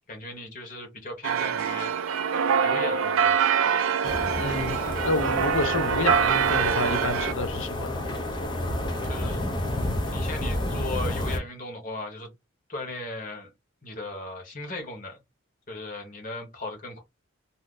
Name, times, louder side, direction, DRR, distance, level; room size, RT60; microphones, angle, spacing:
voice 1, 0.1-1.9 2.6-3.4 9.0-9.4 10.0-12.3 12.7-13.5 13.8-15.2 15.7-17.0, left 2 dB, 40° left, 1.2 m, -37 dB
sound 1, 1.2-7.3, right 7 dB, 85° right, 0.4 m, -25 dB
sound 2, 4.0-11.4, left 1 dB, 20° left, 0.5 m, -30 dB
voice 2, 4.3-4.8 5.0-8.1, left 2 dB, 70° left, 0.6 m, -29 dB
2.7 x 2.1 x 3.6 m
head